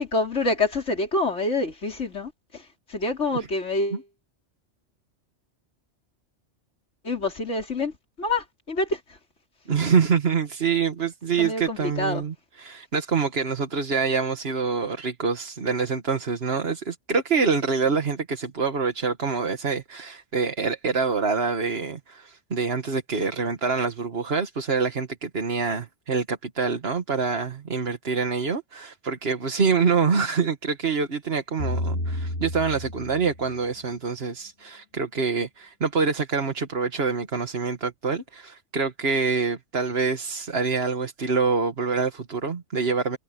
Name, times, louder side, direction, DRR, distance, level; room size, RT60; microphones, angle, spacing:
voice 1, 0.0-4.1 7.0-9.2 11.4-12.3, left 2 dB, 75° left, 4.3 m, -27 dB
voice 2, 9.7-12.3 12.6-43.2, right 5 dB, 55° right, 1.8 m, -26 dB
sound 1, 31.6-33.8, left 1 dB, 60° left, 4.0 m, -31 dB
omnidirectional pair, 1.2 m